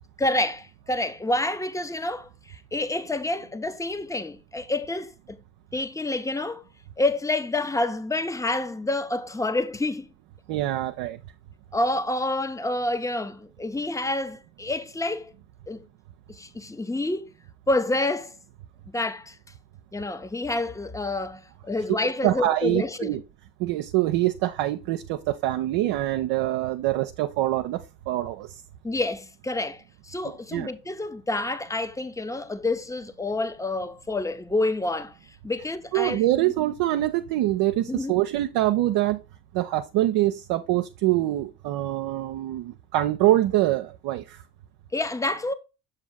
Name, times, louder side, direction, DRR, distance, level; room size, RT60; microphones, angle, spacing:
voice 1, 0.2-5.4 5.7-6.6 7.0-10.1 11.7-15.3 15.7-15.8 16.3-17.3 17.7-18.4 18.9-19.4 19.9-23.2 28.8-35.2 35.4-36.5 37.9-38.2 44.9-45.5, left 2 dB, 5° left, 0.5 m, -28 dB
voice 2, 10.5-11.2 21.9-22.0 22.2-23.2 23.6-28.6 30.5-30.7 35.9-39.2 39.5-44.4, right 15 dB, 55° right, 0.6 m, -24 dB
7.0 x 2.7 x 5.3 m
figure-of-eight pair, 45°, 48 cm